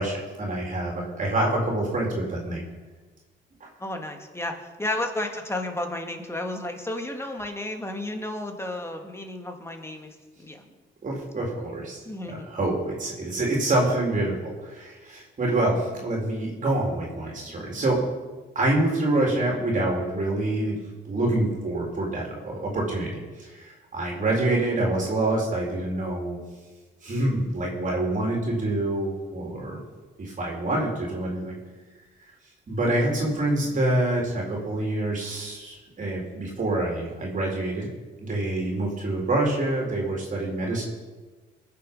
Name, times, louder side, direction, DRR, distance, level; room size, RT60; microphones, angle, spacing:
voice 1, 0.0-2.6 3.6-3.7 11.0-12.0 12.3-18.0 18.6-20.7 21.0-23.1 23.4-26.4 27.0-29.8 30.2-31.6 32.7-37.9 38.2-40.8, right 2 dB, 40° right, -2 dB, 4.0 m, -26 dB
voice 2, 3.8-10.6 12.1-12.5, left 1 dB, 15° left, 4 dB, 2.1 m, -32 dB
20.5 x 7.4 x 5.5 m, 1.3 s
cardioid pair, 90°, 20 cm